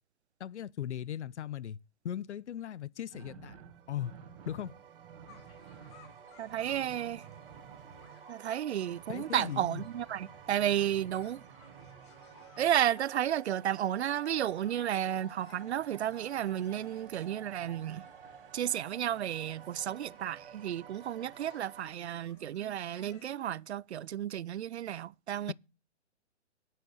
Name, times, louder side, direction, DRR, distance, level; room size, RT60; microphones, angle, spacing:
voice 1, 0.4-1.8 2.0-3.6 3.9-4.1 4.5-4.7 9.1-9.8 25.5-25.6, left 10 dB, 75° left, 0.7 m, -38 dB
sound 1, 3.1-13.1 14.6-21.5, right 7 dB, 25° right, 2.0 m, -56 dB
sound 2, 3.6-21.9, right 8 dB, 50° right, 1.2 m, -53 dB
sound 3, 5.3-23.3, left 5 dB, 25° left, 1.8 m, -61 dB
voice 2, 6.4-7.2 8.3-11.4 12.6-18.0 18.5-25.5, right 11 dB, 70° right, 0.5 m, -32 dB
10.5 x 7.8 x 6.3 m
hypercardioid pair, 170°, 35 cm